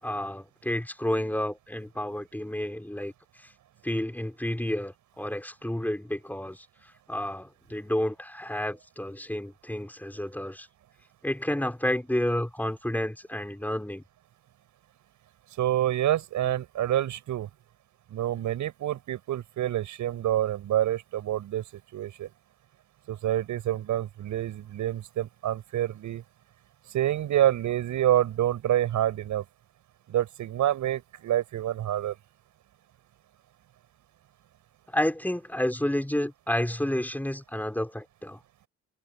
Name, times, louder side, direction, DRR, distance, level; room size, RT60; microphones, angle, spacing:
voice 1, 0.0-3.1 3.4-3.5 3.8-10.7 11.2-14.0 34.9-38.4, left 1 dB, 5° left, 5.1 m, -30 dB
voice 2, 15.6-17.5 18.1-21.6 21.9-22.3 23.1-26.2 26.9-29.4 30.1-32.1, right 12 dB, 75° right, 7.9 m, -27 dB
cardioid pair, 90°, 30 cm